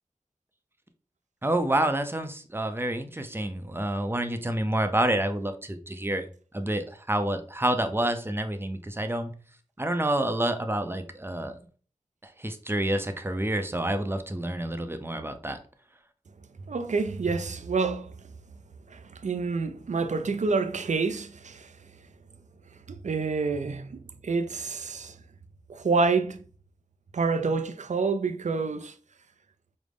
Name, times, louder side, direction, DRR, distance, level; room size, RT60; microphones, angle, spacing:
voice 1, 1.4-6.3 6.5-9.3 9.8-11.6 12.2-15.6, right 1 dB, 15° right, 0.5 m, -28 dB
voice 2, 16.7-18.1 18.9-21.7 22.9-25.1 25.7-26.4 27.1-28.9, right 4 dB, 70° right, 0.4 m, -28 dB
5.0 x 2.1 x 3.4 m
wide cardioid pair, 40°, 13 cm